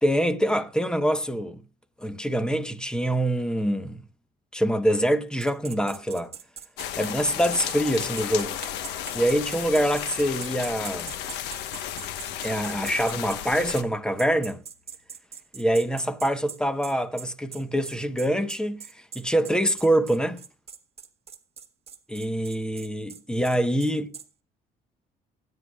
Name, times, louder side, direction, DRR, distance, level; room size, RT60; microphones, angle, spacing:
voice 1, 0.0-1.6 2.0-4.0 4.5-6.3 7.0-8.6 9.1-11.1 12.4-14.6 15.5-18.8 19.1-20.4 22.1-24.2, equal, 5° left, 1.1 m, -25 dB
sound 1, 5.4-13.4 13.8-13.9 14.2-24.3, right 7 dB, 35° right, 1.2 m, -42 dB
sound 2, 6.8-13.8, left 11 dB, 85° left, 1.3 m, -34 dB
19.5 x 9.7 x 2.4 m
cardioid pair, 110°, 17 cm